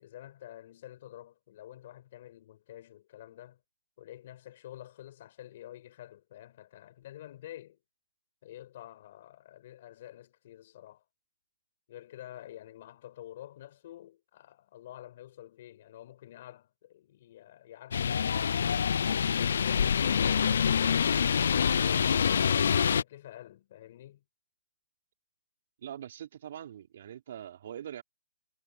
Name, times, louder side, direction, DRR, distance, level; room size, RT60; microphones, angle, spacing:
voice 1, 0.0-3.6 4.0-7.8 8.4-11.0 11.9-21.3 21.8-24.2, left 13 dB, 40° left, 5.0 m, -49 dB
sound 1, 17.9-23.0, left 7 dB, 65° left, 0.3 m, -26 dB
voice 2, 25.8-28.0, right 10 dB, 50° right, 4.7 m, -43 dB
hypercardioid pair, 165°, 0 cm